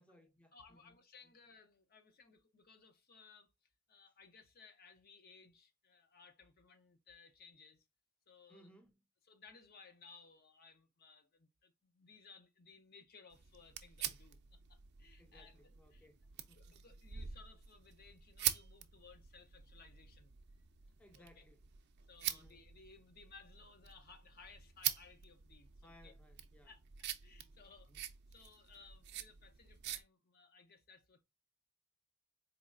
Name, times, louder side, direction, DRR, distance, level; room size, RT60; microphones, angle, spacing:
voice 1, 0.0-1.3 8.5-9.0 15.2-16.8 21.0-21.6 22.2-22.7 25.8-26.7 27.9-28.0, left 1 dB, 5° left, 0.6 m, -64 dB
voice 2, 0.5-3.5 3.9-7.8 8.3-8.7 9.3-16.1 16.6-20.3 21.1-21.5 22.1-26.1 26.7-26.8 27.2-31.2, left 4 dB, 45° left, 0.7 m, -61 dB
sound 1, 13.3-30.0, right 12 dB, 55° right, 0.5 m, -45 dB
4.3 x 3.1 x 2.4 m
head